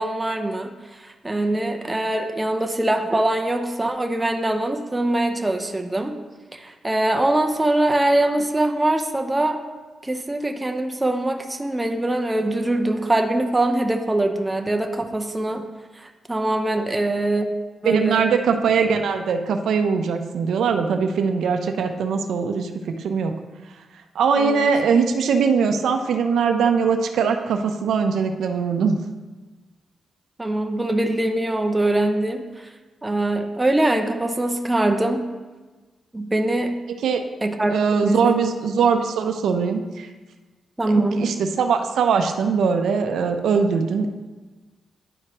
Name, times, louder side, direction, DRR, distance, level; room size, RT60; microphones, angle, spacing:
voice 1, 0.0-6.2 6.5-9.6 10.0-15.7 16.0-17.5 17.8-18.2 24.4-24.7 30.4-32.7 33.0-35.3 36.1-36.7 37.4-38.4 40.8-41.3, right 1 dB, 15° right, 5 dB, 0.6 m, -23 dB
voice 2, 17.8-23.3 24.1-29.0 36.9-37.2 37.7-40.1 40.9-44.1, right 5 dB, 85° right, 6 dB, 0.6 m, -21 dB
11.0 x 4.6 x 2.9 m, 1.3 s
cardioid pair, 85°, 0 cm